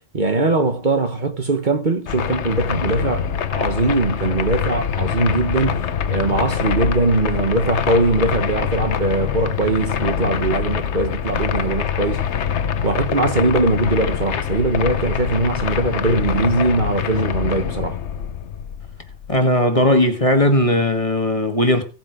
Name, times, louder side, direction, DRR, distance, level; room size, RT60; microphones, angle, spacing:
voice 1, 0.1-12.2 12.8-18.0, right 2 dB, 40° right, 1.3 m, -21 dB
sound 1, 2.1-19.4, left 8 dB, 70° left, 1.2 m, -24 dB
voice 2, 19.3-21.8, left 1 dB, 30° left, 1.7 m, -17 dB
17.0 x 7.3 x 5.0 m
omnidirectional pair, 1.2 m